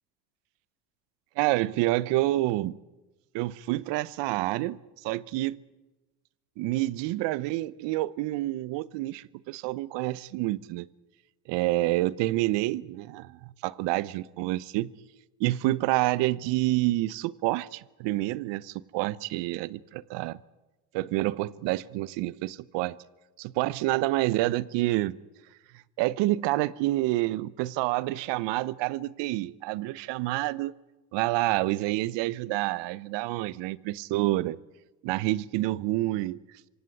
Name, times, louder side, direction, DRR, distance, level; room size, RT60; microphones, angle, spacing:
voice 1, 1.4-2.8 3.3-5.6 6.6-10.9 11.5-14.9 15.4-20.4 20.9-23.0 23.4-25.1 26.0-30.7 31.1-34.6 35.0-36.4, right 18 dB, 60° right, 1.0 m, -28 dB
25.5 x 17.0 x 9.7 m
hypercardioid pair, 80°, 48 cm